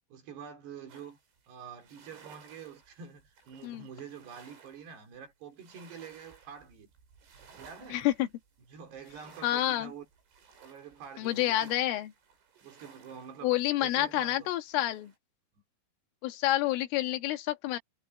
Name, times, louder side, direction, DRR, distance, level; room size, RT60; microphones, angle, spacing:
voice 1, 0.1-1.2 1.5-6.9 7.6-8.1 8.7-10.1 10.6-11.7 12.6-14.5, right 7 dB, 60° right, 5.7 m, -47 dB
sound 1, 0.9-15.2, right 6 dB, 85° right, 8.6 m, -58 dB
voice 2, 7.9-8.3 9.4-9.9 11.2-12.1 13.4-15.1 16.2-17.8, left 14 dB, 90° left, 4.1 m, -28 dB
omnidirectional pair, 5.6 m